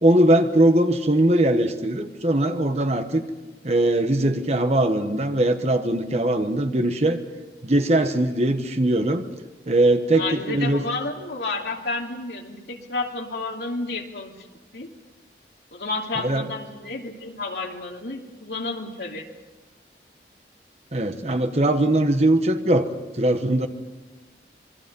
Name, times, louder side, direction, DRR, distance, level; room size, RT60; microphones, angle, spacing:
voice 1, 0.0-3.2 3.6-7.2 7.6-9.2 9.7-10.8 16.2-16.5 20.9-22.9 23.2-23.7, right 1 dB, 40° right, 7 dB, 1.3 m, -20 dB
voice 2, 10.1-14.3 14.7-14.9 15.7-19.3, left 3 dB, 70° left, 1 dB, 2.8 m, -31 dB
27.0 x 22.5 x 5.5 m, 1.2 s
head